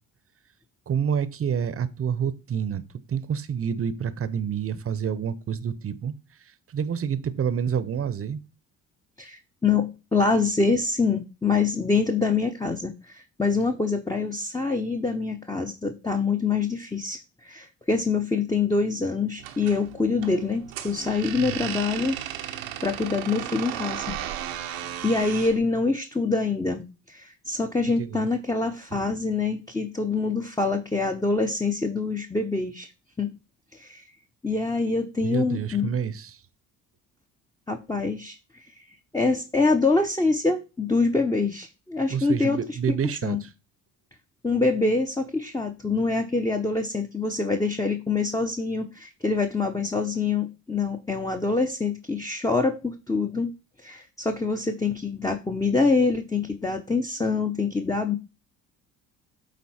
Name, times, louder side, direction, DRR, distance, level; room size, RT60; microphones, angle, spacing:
voice 1, 0.9-2.8 3.1-6.1 6.7-8.4 21.3-21.6 28.0-28.3 28.9-29.0 35.2-36.4 42.1-43.5, right 7 dB, 35° right, 0.8 m, -28 dB
voice 2, 9.2-17.2 17.4-22.2 22.8-24.2 25.0-32.9 33.2-33.3 33.7-34.0 34.4-35.9 37.7-38.4 39.1-42.6 43.2-43.4 44.4-53.5 53.8-58.2, left 4 dB, 10° left, 0.8 m, -25 dB
sound 1, 19.4-25.6, right 11 dB, 90° right, 0.9 m, -35 dB
8.4 x 3.9 x 4.3 m
hypercardioid pair, 60°, 40 cm